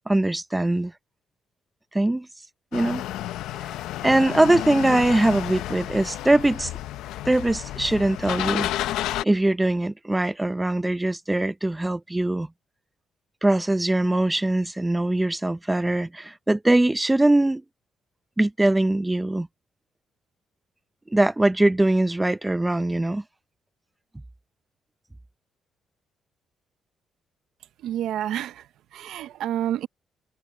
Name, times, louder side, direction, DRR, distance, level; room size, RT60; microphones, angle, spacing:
voice 1, 0.1-0.9 1.9-2.3 2.7-3.0 3.6-3.7 4.0-6.7 7.2-8.7 9.2-12.5 13.4-17.6 18.4-19.5 21.1-23.2, right 1 dB, 10° right, 0.6 m, -22 dB
sound 1, 2.7-9.2, left 13 dB, 90° left, 0.6 m, -31 dB
voice 2, 27.8-29.9, right 11 dB, 80° right, 0.7 m, -29 dB
cardioid pair, 90°, 0 cm